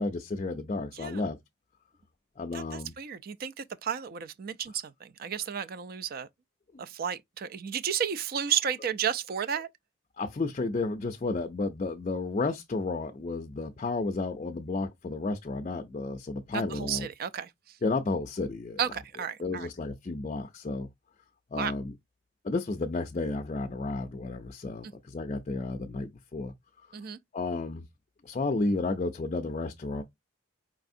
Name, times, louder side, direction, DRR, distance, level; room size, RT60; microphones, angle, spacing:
voice 1, 0.0-1.4 2.4-3.0 6.7-6.8 10.2-17.1 17.8-18.8 19.4-20.9 21.5-21.9 22.4-26.5 27.3-27.9 28.2-30.0, left 3 dB, 35° left, 0.4 m, -32 dB
voice 2, 2.5-6.3 6.8-9.7 16.5-17.5 18.8-19.7 21.6-21.7 26.9-27.2, right 8 dB, 50° right, 0.3 m, -32 dB
4.8 x 3.4 x 2.6 m
head